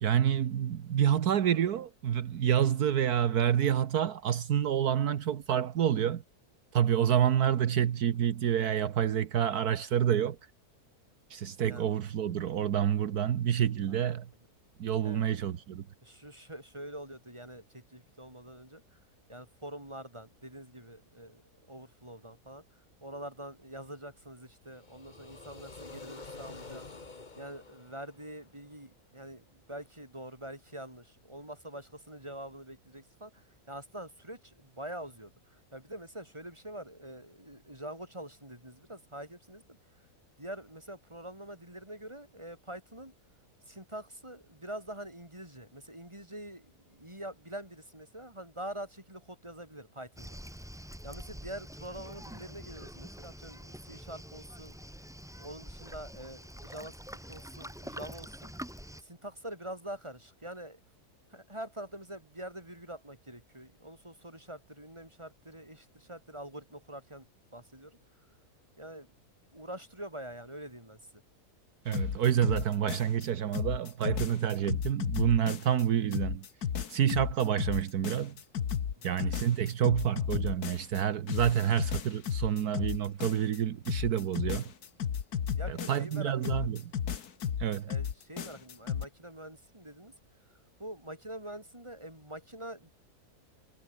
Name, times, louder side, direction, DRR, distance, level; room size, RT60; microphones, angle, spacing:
voice 1, 0.0-6.2 6.7-10.4 11.3-14.3 14.8-15.9 71.8-76.4 76.9-78.4 79.0-84.7 85.7-86.8 87.6-87.9, right 9 dB, 75° right, 1.6 m, -28 dB
voice 2, 11.4-11.8 15.0-15.3 16.0-19.0 19.3-26.9 27.3-40.1 40.4-43.1 43.7-50.4 51.0-54.8 55.4-58.5 59.0-60.8 61.3-68.0 68.8-69.1 69.5-71.2 79.0-79.2 85.6-86.7 87.9-90.1 90.5-92.9, right 1 dB, 15° right, 6.6 m, -45 dB
sound 1, 24.6-28.7, left 3 dB, 30° left, 1.8 m, -48 dB
Waves surf, 50.2-59.0, equal, ahead, 1.3 m, -46 dB
sound 2, 71.9-73.3 73.5-75.8 76.1-81.0 81.3-83.6 83.9-86.2 86.4-89.1, left 8 dB, 80° left, 1.9 m, -33 dB
omnidirectional pair, 1.6 m